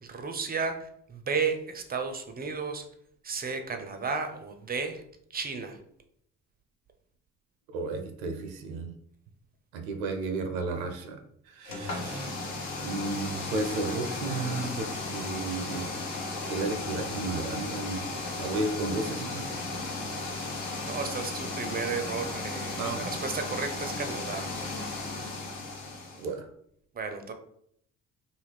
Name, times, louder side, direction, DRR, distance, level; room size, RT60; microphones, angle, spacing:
voice 1, 0.0-2.8 3.2-5.0 5.3-5.8 20.9-24.6 26.9-27.3, right 5 dB, 25° right, 6 dB, 0.5 m, -33 dB
voice 2, 7.7-8.9 9.7-11.2 11.4-12.3 12.8-15.9 16.5-18.0 18.3-19.5 22.7-23.2 26.1-26.5, right 3 dB, 75° right, 5 dB, 0.5 m, -33 dB
sound 1, 11.6-26.3, left 3 dB, 65° left, 1.0 m, -35 dB
2.6 x 2.4 x 3.4 m, 0.69 s
hypercardioid pair, 45°, 41 cm